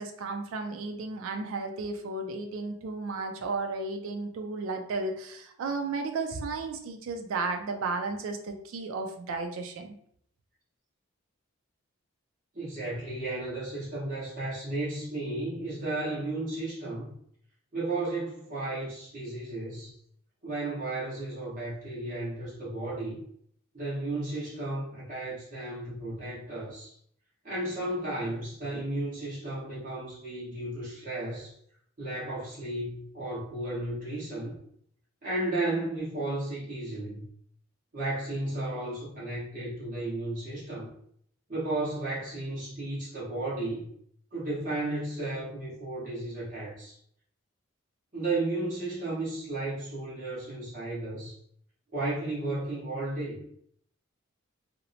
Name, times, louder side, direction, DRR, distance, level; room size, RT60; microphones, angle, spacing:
voice 1, 0.0-9.9, right 3 dB, 75° right, 4 dB, 0.3 m, -34 dB
voice 2, 12.5-17.1 17.7-19.9 20.4-23.2 23.7-26.9 27.4-31.5 32.0-34.5 35.2-37.2 37.9-40.9 41.5-43.9 44.3-47.0 48.1-51.4 51.9-53.4, right 2 dB, 40° right, -8 dB, 1.3 m, -34 dB
2.8 x 2.0 x 2.7 m, 0.65 s
head